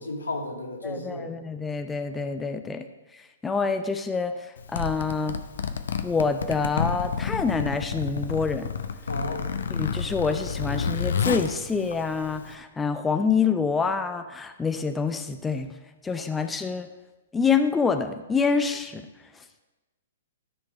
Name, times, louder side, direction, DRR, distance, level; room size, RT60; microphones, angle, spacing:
voice 1, 0.0-1.3 9.1-9.6, left 1 dB, 85° left, -1 dB, 2.0 m, -33 dB
voice 2, 0.8-2.9 3.1-5.4 6.0-8.7 9.7-15.7 16.0-16.9 17.3-19.1, left 5 dB, 10° left, 7 dB, 0.5 m, -27 dB
Zipper (clothing), 4.6-12.5, left 6 dB, 70° left, 0.7 m, -30 dB
13.0 x 4.5 x 5.4 m, 1.1 s
figure-of-eight pair, 115°, 0 cm